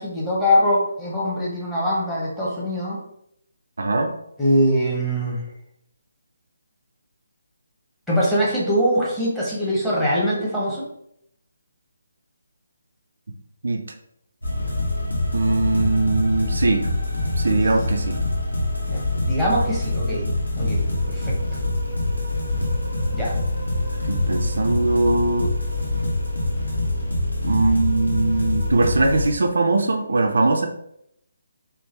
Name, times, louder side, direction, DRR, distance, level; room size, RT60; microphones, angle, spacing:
voice 1, 0.0-3.0 4.4-5.4 8.1-10.8 18.9-20.3 20.5-20.8 21.1-21.4 23.1-23.3, equal, 5° left, -7 dB, 0.8 m, -22 dB
voice 2, 3.8-4.1 13.6-13.8 15.3-16.9 17.4-18.2 24.1-25.5 27.4-30.7, right 2 dB, 60° right, 4 dB, 0.3 m, -21 dB
sound 1, 14.4-29.3, left 1 dB, 80° left, 0.9 m, -25 dB
3.3 x 2.0 x 3.3 m, 0.75 s
figure-of-eight pair, 145°, 0 cm